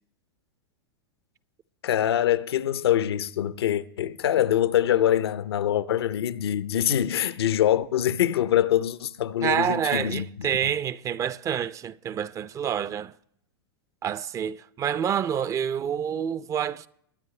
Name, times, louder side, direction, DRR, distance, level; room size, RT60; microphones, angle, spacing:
voice 1, 1.8-10.7, left 11 dB, 80° left, 0.7 m, -24 dB
voice 2, 9.4-13.1 14.0-16.9, right 9 dB, 25° right, 0.4 m, -28 dB
22.0 x 9.0 x 3.2 m
hypercardioid pair, 115°, 13 cm